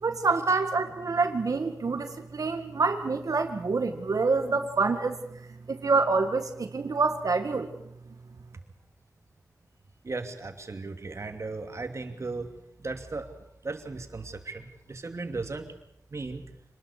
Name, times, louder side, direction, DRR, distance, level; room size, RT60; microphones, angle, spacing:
voice 1, 0.0-5.4 5.7-7.7, right 4 dB, 65° right, 7 dB, 2.0 m, -27 dB
voice 2, 10.0-13.3 13.6-15.8 16.1-16.4, right 3 dB, 50° right, 6 dB, 2.8 m, -36 dB
26.5 x 20.0 x 6.8 m, 0.75 s
wide cardioid pair, 110°, 6 cm